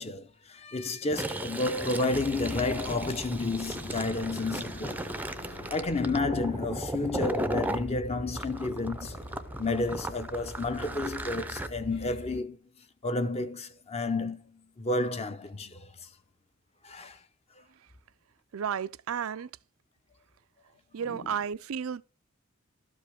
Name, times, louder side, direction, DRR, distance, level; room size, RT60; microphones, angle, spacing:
voice 1, 0.0-5.0 5.7-9.2 9.6-12.6 13.0-15.9 16.8-17.2 21.1-21.3, left 2 dB, 30° left, 0.7 m, -31 dB
Fill (with liquid), 1.0-7.8 8.4-11.7, right 1 dB, 10° right, 0.5 m, -36 dB
sound 1, 2.1-12.4, equal, 55° left, 1.4 m, -43 dB
voice 2, 18.5-19.5 20.9-22.0, right 7 dB, 85° right, 0.4 m, -32 dB
12.5 x 5.1 x 5.0 m
head